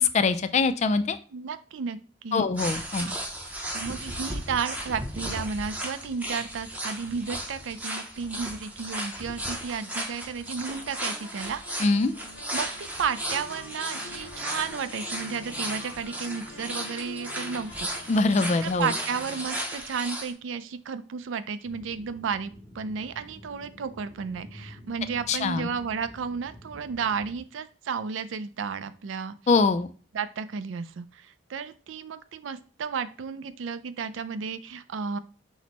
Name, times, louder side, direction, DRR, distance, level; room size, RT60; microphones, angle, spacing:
voice 1, 0.0-1.2 2.3-3.1 11.8-12.1 18.1-18.9 25.3-25.7 29.5-29.9, left 4 dB, 35° left, 11 dB, 0.3 m, -23 dB
voice 2, 1.3-2.5 3.0-3.2 3.7-11.8 12.5-17.9 18.6-29.4 30.1-35.2, right 6 dB, 90° right, 12 dB, 0.4 m, -33 dB
sound 1, 2.6-20.3, right 1 dB, 10° right, 0.6 m, -35 dB
sound 2, 10.7-19.5, left 2 dB, 70° left, 0.9 m, -46 dB
sound 3, 21.6-27.4, equal, 65° right, 1.3 m, -48 dB
5.9 x 2.1 x 4.0 m, 0.38 s
head